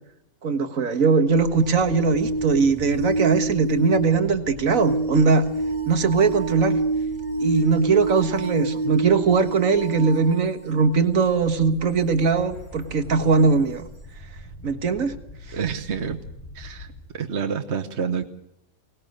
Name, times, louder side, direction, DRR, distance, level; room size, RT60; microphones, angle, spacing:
voice 1, 0.4-5.5 5.9-6.8 7.4-13.9 14.6-15.2 15.5-15.6, right 4 dB, 70° right, 9 dB, 1.8 m, -20 dB
sound 1, 1.3-11.1 13.4-13.5, right 2 dB, 35° right, 4.4 m, -28 dB
sound 2, 1.5-17.0, equal, 20° left, 7.8 m, -44 dB
voice 2, 15.5-16.2 16.5-18.2, right 6 dB, 55° right, 6 dB, 1.4 m, -28 dB
23.0 x 18.5 x 6.6 m, 0.78 s
omnidirectional pair, 1.5 m